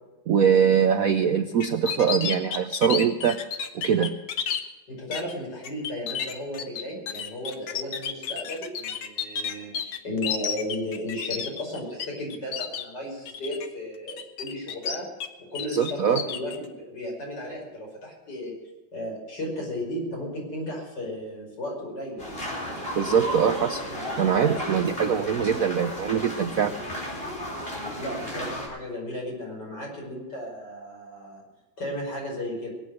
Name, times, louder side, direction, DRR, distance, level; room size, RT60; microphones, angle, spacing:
voice 1, 0.3-3.4 3.7-4.2 15.7-16.2 22.9-23.8 24.2-26.7, right 7 dB, 60° right, 8 dB, 0.9 m, -23 dB
sound 1, 1.6-4.6 5.1-5.3 5.6-12.1 12.3-12.8 13.3-13.7 14.1-15.3 15.6-16.6, left 8 dB, 90° left, 2.0 m, -31 dB
voice 2, 4.9-15.1 15.5-18.5 18.9-22.2 27.7-31.4 31.8-32.7, left 1 dB, 60° left, -1 dB, 5.9 m, -34 dB
sound 2, 22.2-28.7, equal, 25° left, 5.0 m, -33 dB
21.5 x 8.7 x 6.4 m, 1.2 s
omnidirectional pair, 2.2 m